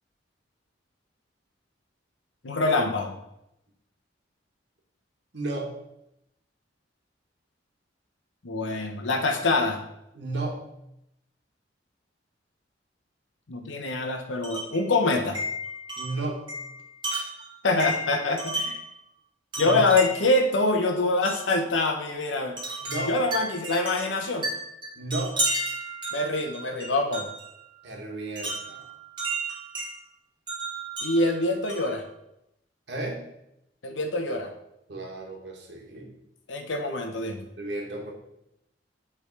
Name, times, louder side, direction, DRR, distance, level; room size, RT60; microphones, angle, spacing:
voice 1, 2.4-3.1 8.4-9.8 13.5-15.4 17.6-18.8 19.6-22.6 23.1-24.5 26.1-27.3 31.0-32.0 33.8-34.5 36.5-37.4, left 2 dB, 90° left, 4 dB, 0.8 m, -25 dB
voice 2, 5.3-5.7 10.1-10.6 13.6-13.7 16.0-16.4 19.6-19.8 22.8-23.2 24.9-25.3 27.8-28.8 32.9-33.2 34.9-36.1 37.6-38.1, right 2 dB, 65° right, -1 dB, 1.6 m, -33 dB
Wind chime, 14.4-14.8 15.3-18.9 19.5-20.4 21.2-21.5 22.6-27.5 28.4-29.9 30.5-32.0, right 2 dB, 25° right, 2.1 m, -33 dB
8.2 x 3.5 x 4.6 m, 0.83 s
head